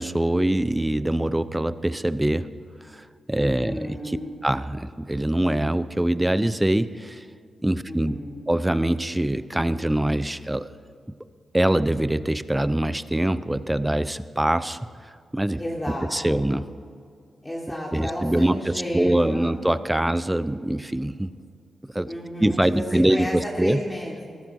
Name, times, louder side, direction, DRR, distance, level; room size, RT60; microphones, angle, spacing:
voice 1, 0.0-2.5 2.9-4.2 4.4-7.2 7.6-8.2 8.5-10.7 11.5-14.8 15.3-15.6 16.1-16.7 17.9-21.3 21.9-22.1 22.4-23.8, right 1 dB, 10° right, 14 dB, 0.7 m, -23 dB
voice 2, 3.4-4.4 7.9-8.5 15.6-16.4 17.4-19.6 22.0-22.8 23.1-24.4, equal, 15° left, -4 dB, 3.2 m, -32 dB
20.5 x 14.5 x 4.7 m, 2.3 s
cardioid pair, 65°, 0 cm